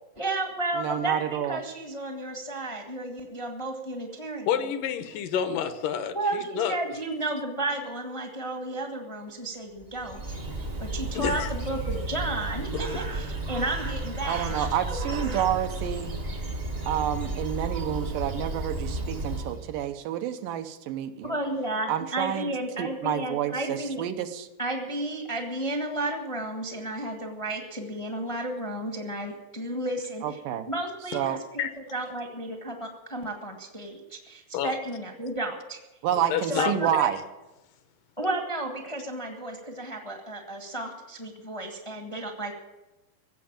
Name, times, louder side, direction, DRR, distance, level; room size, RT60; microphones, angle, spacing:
voice 1, 0.2-4.5 6.1-10.2 10.8-15.4 21.2-24.0 24.6-30.4 30.7-35.8 36.5-37.1 38.2-42.5, right 2 dB, 20° left, 2 dB, 0.8 m, -33 dB
voice 2, 0.8-1.6 14.2-16.1 16.9-21.4 21.9-22.5 22.8-24.5 30.2-30.7 31.1-31.4 36.0-37.2, right 10 dB, 80° right, 8 dB, 2.5 m, -29 dB
voice 3, 4.5-6.8 11.1-11.5 31.6-31.7 34.5-34.7 36.3-36.7, left 8 dB, 75° left, 10 dB, 2.5 m, -28 dB
Bird, 9.8-19.8, right 2 dB, 35° right, 0.9 m, -33 dB
16.0 x 7.8 x 8.8 m, 1.0 s
omnidirectional pair, 3.9 m